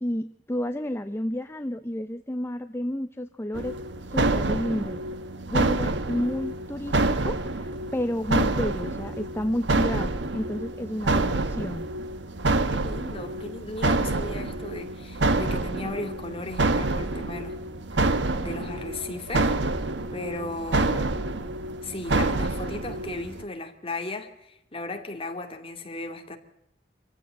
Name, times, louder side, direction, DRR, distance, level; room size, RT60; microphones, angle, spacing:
voice 1, 0.0-3.8 4.1-5.0 5.5-11.9, left 1 dB, 15° left, 0.7 m, -30 dB
sound 1, 3.5-23.4, right 2 dB, 80° right, 1.3 m, -27 dB
voice 2, 12.7-17.6 17.9-19.6 20.1-21.2 21.8-26.4, left 2 dB, 35° left, 2.4 m, -36 dB
26.0 x 15.5 x 7.8 m
head